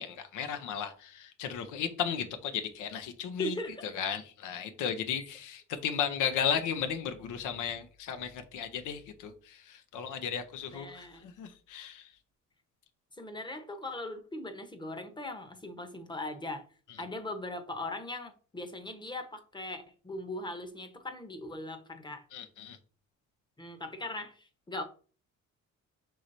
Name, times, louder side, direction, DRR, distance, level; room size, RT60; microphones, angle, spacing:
voice 1, 0.0-3.6 3.8-12.2 22.3-22.8, left 8 dB, 85° left, 0.7 m, -35 dB
voice 2, 3.4-3.9 10.7-11.3 13.2-16.6 17.0-22.2 23.6-24.8, left 1 dB, 15° left, 0.9 m, -39 dB
5.6 x 3.1 x 2.6 m
cardioid pair, 90°, 30 cm